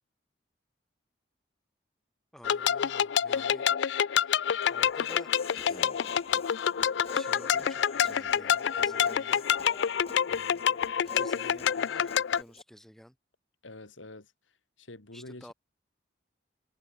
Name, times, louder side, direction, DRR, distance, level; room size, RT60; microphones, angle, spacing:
voice 1, 2.3-3.7 4.1-4.4 4.7-6.0 7.1-9.5 10.3-13.2 15.1-15.5, equal, ahead, 6.0 m, -51 dB
sound 1, 2.4-12.4, left 8 dB, 70° left, 0.4 m, -27 dB
Human voice, 4.6-12.6, left 2 dB, 30° left, 3.5 m, -47 dB
voice 2, 13.6-15.5, left 2 dB, 90° left, 2.6 m, -47 dB
head